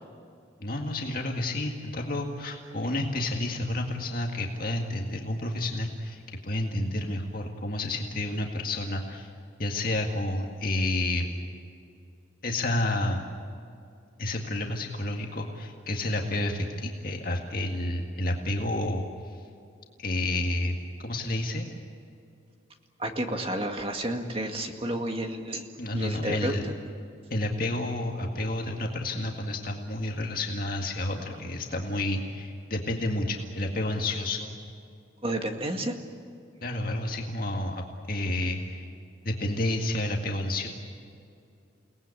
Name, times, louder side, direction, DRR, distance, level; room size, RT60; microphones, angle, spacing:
voice 1, 0.6-9.3 9.6-11.3 12.4-13.3 14.2-19.0 20.0-20.8 21.0-21.7 25.8-26.6 27.3-34.5 36.6-38.9 39.2-40.7, left 1 dB, 45° left, 1 dB, 2.0 m, -30 dB
voice 2, 23.0-26.7 31.1-31.3 35.2-36.0, right 1 dB, 30° right, 4 dB, 2.0 m, -31 dB
29.5 x 19.0 x 8.5 m, 2.5 s
head